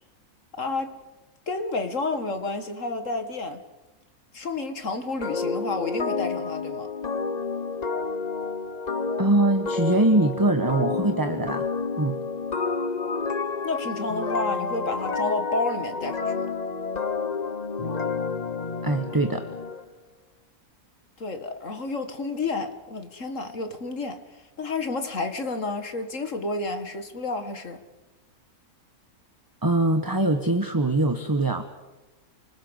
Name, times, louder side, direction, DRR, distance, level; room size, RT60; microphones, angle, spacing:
voice 1, 0.6-1.0 1.5-3.6 4.3-6.9 13.6-16.5 21.2-27.8, left 3 dB, 55° left, 2.1 m, -30 dB
sound 1, 5.2-19.8, left 4 dB, 30° left, 1.0 m, -30 dB
voice 2, 9.2-11.6 12.0-12.2 18.8-19.4 29.6-31.7, right 2 dB, 15° right, 1.1 m, -22 dB
29.0 x 20.5 x 8.1 m
omnidirectional pair, 1.6 m